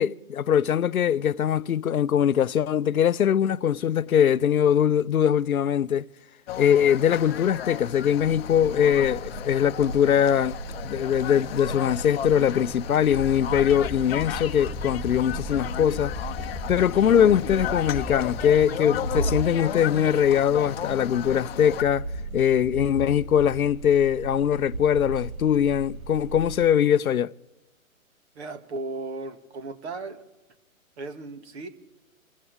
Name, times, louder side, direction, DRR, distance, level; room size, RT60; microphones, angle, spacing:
voice 1, 0.0-6.1 6.6-10.6 10.8-16.1 16.7-22.1 22.3-27.3, left 9 dB, 85° left, 0.6 m, -22 dB
sound 1, 6.5-21.8, left 10 dB, 45° left, 0.8 m, -35 dB
sound 2, 8.2-26.7, right 2 dB, 85° right, 1.5 m, -37 dB
sound 3, 13.1-18.7, left 2 dB, 5° left, 2.5 m, -37 dB
voice 2, 28.4-30.2 31.0-31.7, right 3 dB, 50° right, 2.1 m, -36 dB
27.0 x 14.5 x 3.5 m
hypercardioid pair, 135°, 42 cm